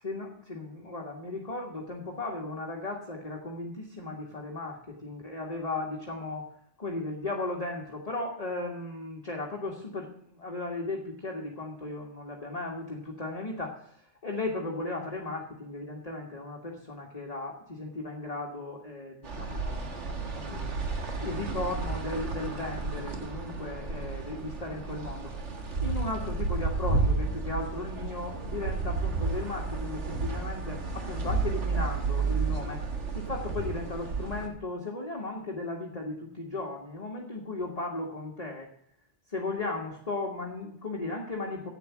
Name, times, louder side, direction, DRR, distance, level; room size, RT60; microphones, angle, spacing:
voice 1, 0.0-6.4 6.8-20.7 21.2-32.8 33.1-38.7 39.3-41.7, left 2 dB, 35° left, 0 dB, 1.8 m, -36 dB
sound 1, 19.2-34.5, right 4 dB, 75° right, 2.0 m, -32 dB
11.5 x 8.5 x 7.2 m, 0.69 s
omnidirectional pair, 1.2 m